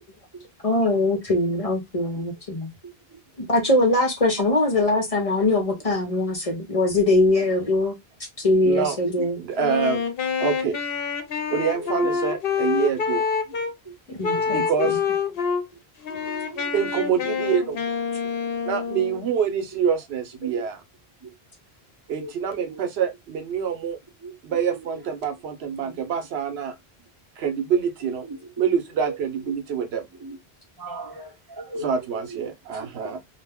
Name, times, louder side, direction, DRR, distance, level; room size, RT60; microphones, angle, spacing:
voice 1, 0.6-2.7 3.4-7.9 8.4-9.4 14.1-15.0 29.0-29.2, left 2 dB, 40° left, 0.8 m, -22 dB
voice 2, 2.8-3.2 9.2-9.3 11.6-12.2 13.8-14.4 15.7-17.4 20.5-20.6 21.2-21.3 22.1-22.8 24.2-25.0 26.1-26.2 28.2-28.5 30.1-30.4 30.8-32.4 32.8-33.2, right 2 dB, 25° right, 1.0 m, -39 dB
voice 3, 8.6-8.9 9.4-10.0 10.4-10.8 11.5-13.2 14.5-15.0 16.7-17.8 18.6-20.8 22.1-24.0 24.4-26.7 27.4-28.2 28.6-30.0 31.8-33.2, right 7 dB, 90° right, 0.9 m, -26 dB
Wind instrument woodwind instrument, 9.5-13.7 14.2-15.6 16.0-19.3, left 6 dB, 70° left, 0.8 m, -26 dB
2.4 x 2.2 x 3.4 m
omnidirectional pair, 1.0 m